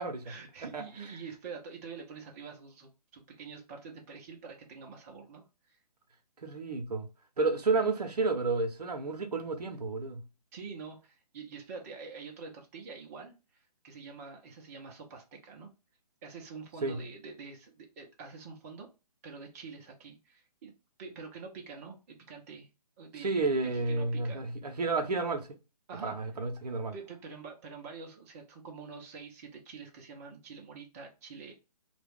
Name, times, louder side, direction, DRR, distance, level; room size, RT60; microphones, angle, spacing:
voice 1, 0.2-5.8 10.5-15.7 16.2-18.9 19.2-20.7 21.0-22.7 23.0-24.4 24.7-24.8 25.9-26.2 26.9-31.5, right 5 dB, 25° right, 0.5 m, -46 dB
voice 2, 6.4-7.1 7.4-10.2 16.8-17.0 23.2-25.4 26.0-26.9, right 3 dB, 70° right, 0.7 m, -31 dB
2.3 x 2.1 x 3.3 m
figure-of-eight pair, 135°, 21 cm